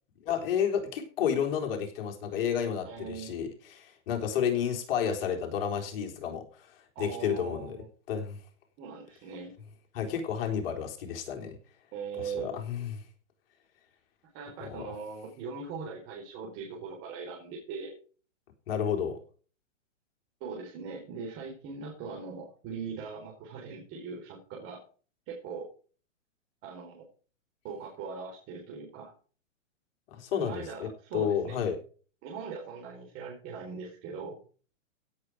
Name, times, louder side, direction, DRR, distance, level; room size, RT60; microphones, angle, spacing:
voice 1, 0.3-7.8 8.1-8.4 9.9-11.6 12.2-12.9 14.6-15.0 18.7-19.2 30.1-31.8, left 8 dB, 45° left, 3 dB, 3.8 m, -31 dB
voice 2, 2.8-3.3 6.9-7.9 8.8-9.5 11.9-12.5 14.3-17.9 20.4-24.8 25.3-25.7 26.6-27.0 27.6-29.1 30.4-31.7 32.2-34.4, right 5 dB, 35° right, -1 dB, 4.5 m, -40 dB
16.5 x 7.7 x 4.8 m, 0.40 s
hypercardioid pair, 140°, 39 cm